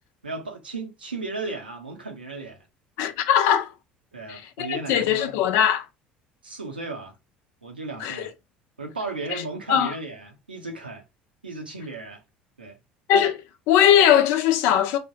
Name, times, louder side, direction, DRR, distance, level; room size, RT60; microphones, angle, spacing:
voice 1, 0.2-2.7 4.1-5.4 6.4-7.2 7.6-8.3 8.8-11.0 11.4-12.2 12.6-12.8, right 3 dB, 90° right, 0.7 m, -35 dB
voice 2, 3.0-3.7 4.3-5.9 8.0-8.3 9.3-9.4 9.7-9.9 13.1-15.0, left 10 dB, 60° left, 0.5 m, -20 dB
3.4 x 2.2 x 2.7 m
figure-of-eight pair, 65°, 5 cm